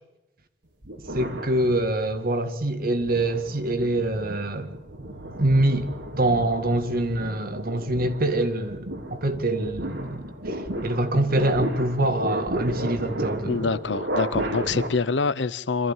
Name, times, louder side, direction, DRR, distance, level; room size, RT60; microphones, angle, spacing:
sound 1, 0.8-2.3 2.8-14.9, right 1 dB, 85° right, 3.6 m, -33 dB
voice 1, 1.1-4.7 5.4-13.7 14.6-14.7, right 1 dB, 55° right, 2.0 m, -25 dB
voice 2, 13.4-15.9, left 4 dB, 80° left, 0.8 m, -25 dB
26.5 x 14.0 x 9.0 m
head